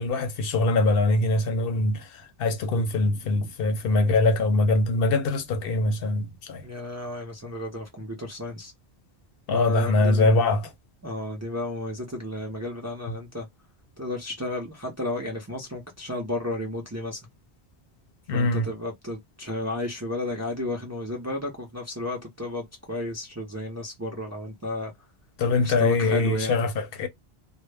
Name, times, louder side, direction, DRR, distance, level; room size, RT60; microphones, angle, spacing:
voice 1, 0.0-2.0 2.4-6.6 9.5-10.7 18.3-18.7 25.4-27.1, left 2 dB, 65° left, 0.7 m, -23 dB
voice 2, 6.6-8.7 9.5-10.5 11.0-13.5 14.0-17.2 18.3-24.9 25.6-26.6, left 1 dB, 20° right, 0.4 m, -33 dB
2.1 x 2.0 x 3.2 m
omnidirectional pair, 1.1 m